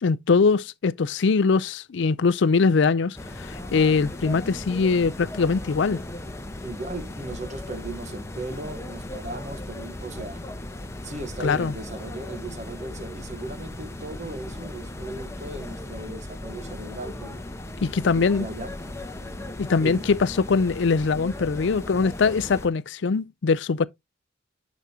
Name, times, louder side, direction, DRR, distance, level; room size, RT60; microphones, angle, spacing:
voice 1, 0.0-6.0 11.4-11.7 17.8-18.5 19.6-23.9, left 4 dB, 60° left, 0.4 m, -22 dB
sound 1, 3.1-22.7, left 1 dB, 15° left, 1.0 m, -37 dB
voice 2, 6.6-10.4 11.0-17.4 18.0-18.7 19.8-20.1, right 2 dB, 35° right, 1.1 m, -37 dB
10.5 x 6.2 x 2.8 m
head